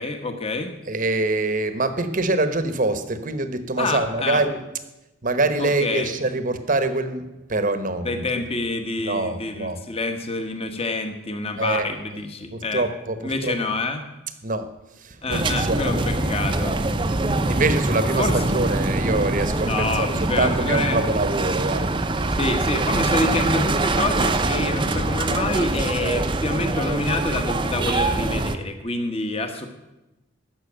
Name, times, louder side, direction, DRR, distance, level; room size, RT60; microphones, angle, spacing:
voice 1, 0.0-0.7 3.8-4.4 5.6-6.1 8.0-12.9 13.2-14.1 15.2-16.8 18.2-18.4 19.6-21.0 22.3-29.7, left 2 dB, 30° left, 6 dB, 1.2 m, -27 dB
voice 2, 0.9-4.6 5.2-8.2 9.0-9.8 11.6-11.9 12.5-13.5 14.4-14.7 15.0-16.0 17.5-22.0, right 2 dB, 40° right, 10 dB, 1.0 m, -25 dB
sound 1, 15.3-28.6, right 2 dB, 25° right, 0.6 m, -24 dB
13.5 x 6.0 x 8.8 m, 0.98 s
head